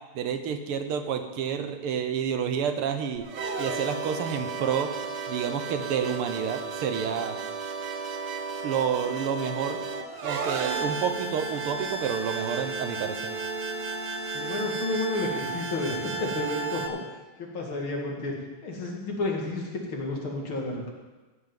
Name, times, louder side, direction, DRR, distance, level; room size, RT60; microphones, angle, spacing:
voice 1, 0.2-3.3 3.6-4.9 5.3-7.4 8.6-9.8 10.2-13.4, right 7 dB, 80° right, 8 dB, 1.9 m, -29 dB
sound 1, 3.2-16.9, right 4 dB, 55° right, 1.7 m, -33 dB
voice 2, 14.3-18.3 18.6-20.9, left 2 dB, 65° left, -1 dB, 3.1 m, -31 dB
15.0 x 5.8 x 8.9 m, 1.2 s
omnidirectional pair, 2.4 m